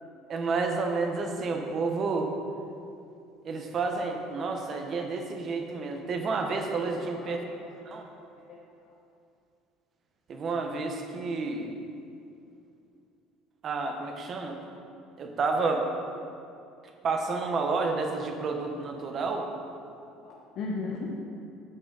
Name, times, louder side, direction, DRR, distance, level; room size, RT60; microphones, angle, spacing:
voice 1, 0.3-2.3 3.4-7.4 7.9-8.1 10.3-11.7 13.6-14.6 15.2-15.9 17.0-19.5, right 4 dB, 30° right, 3 dB, 0.9 m, -30 dB
voice 2, 7.0-8.0 8.5-8.6 18.6-18.7 20.2-21.2, left 3 dB, 50° left, -2 dB, 0.9 m, -37 dB
9.4 x 7.8 x 4.0 m, 2.5 s
cardioid pair, 160°, 0 cm